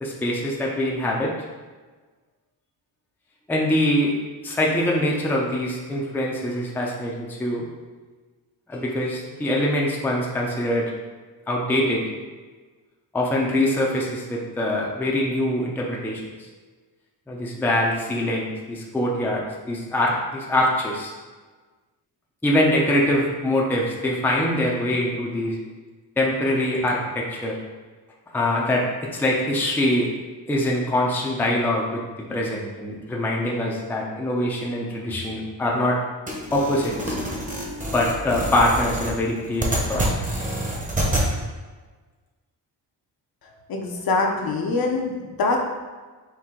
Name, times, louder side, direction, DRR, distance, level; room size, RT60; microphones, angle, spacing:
voice 1, 0.0-1.3 3.5-4.1 4.4-7.7 8.7-10.9 11.5-12.0 13.1-16.3 17.3-21.1 22.4-25.6 26.2-27.6 28.3-28.9 29.2-30.1 30.5-32.0 32.3-36.0 36.5-37.2 37.9-40.4, left 1 dB, 5° left, -3 dB, 0.5 m, -23 dB
sound 1, 36.3-41.3, right 1 dB, 15° right, 0.9 m, -27 dB
voice 2, 43.7-45.6, left 3 dB, 50° left, 1 dB, 0.7 m, -24 dB
4.4 x 2.6 x 3.7 m, 1.4 s
cardioid pair, 115°, 45 cm